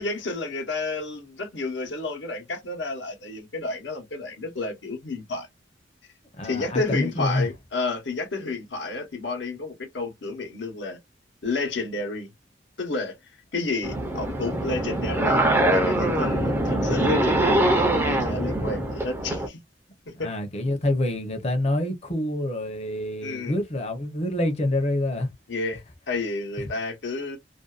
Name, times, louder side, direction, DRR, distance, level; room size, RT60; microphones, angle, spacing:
voice 1, 0.0-5.5 6.4-11.0 11.4-12.3 12.8-13.2 13.5-19.6 20.1-20.3 23.2-23.5 25.5-27.4, left 3 dB, 75° left, 0.9 m, -31 dB
voice 2, 6.4-7.5 20.2-25.3, left 1 dB, 35° left, 0.7 m, -27 dB
sound 1, 13.8-19.5, right 1 dB, 15° right, 0.5 m, -23 dB
2.5 x 2.2 x 2.3 m
head